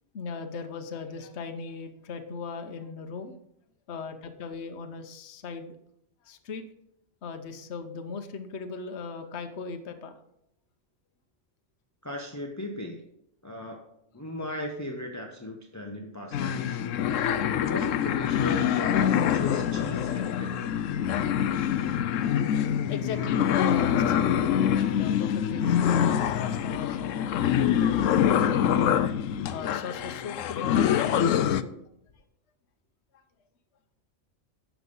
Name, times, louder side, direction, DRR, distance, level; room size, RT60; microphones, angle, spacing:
voice 1, 0.1-3.4 3.9-5.8 6.2-6.6 7.2-10.2 22.9-27.1 27.6-29.0 29.5-31.8 32.1-32.2, left 4 dB, 60° left, 6 dB, 1.2 m, -38 dB
voice 2, 12.0-13.0 13.4-13.8 14.1-16.8 17.4-20.7, left 1 dB, 15° left, 2 dB, 1.0 m, -37 dB
sound 1, 16.3-31.6, left 9 dB, 80° left, 1.0 m, -25 dB
12.0 x 7.6 x 5.4 m, 0.77 s
omnidirectional pair, 1.3 m